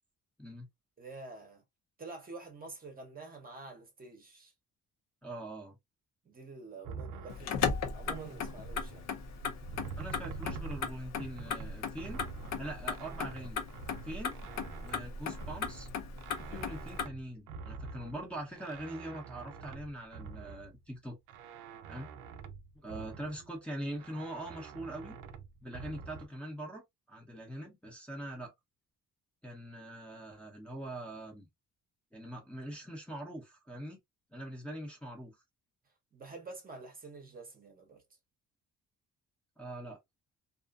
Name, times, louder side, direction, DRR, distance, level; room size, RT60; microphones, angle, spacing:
voice 1, 1.0-1.6 2.0-4.5 6.2-9.1 22.8-23.1 36.1-38.0, right 3 dB, 30° right, 0.8 m, -48 dB
voice 2, 5.2-5.8 10.0-12.2 12.6-13.6 14.0-14.4 14.8-15.9 16.5-21.2 21.9-22.1 22.8-25.2 25.6-28.5 29.4-31.5 32.1-34.0 34.3-35.4 39.6-40.0, right 1 dB, 5° left, 0.7 m, -43 dB
sound 1, 6.8-9.1 9.4-20.9 21.3-23.5 24.0-26.3, right 5 dB, 85° right, 0.5 m, -47 dB
Motor vehicle (road), 7.3-17.1, left 6 dB, 60° left, 0.7 m, -37 dB
2.5 x 2.4 x 2.3 m
cardioid pair, 130°, 31 cm